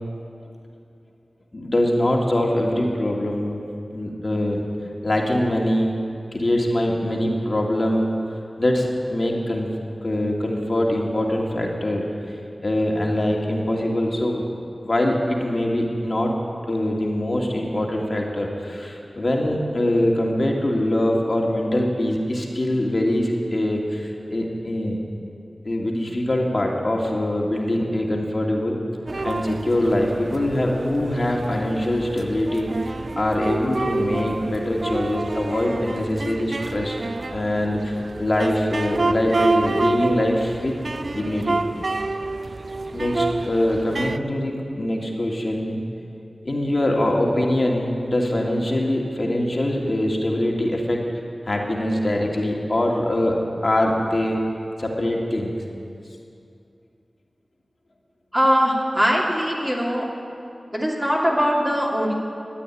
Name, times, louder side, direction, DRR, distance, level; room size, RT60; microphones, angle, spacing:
voice 1, 1.5-3.5 3.9-4.6 5.0-6.0 6.3-8.1 8.6-9.7 10.0-12.0 12.6-14.4 14.8-16.3 16.7-25.0 25.6-28.8 29.2-32.7 33.2-37.0 37.3-40.8 41.1-41.6 42.9-45.8 46.4-51.0 51.5-54.4 54.8-55.5, left 1 dB, 50° left, -1 dB, 2.4 m, -23 dB
sound 1, 29.1-44.2, right 3 dB, 60° right, 0.5 m, -28 dB
voice 2, 58.3-60.1 60.7-62.1, equal, 15° right, -4 dB, 2.6 m, -21 dB
13.5 x 9.1 x 9.9 m, 2.5 s
wide cardioid pair, 50°, 0 cm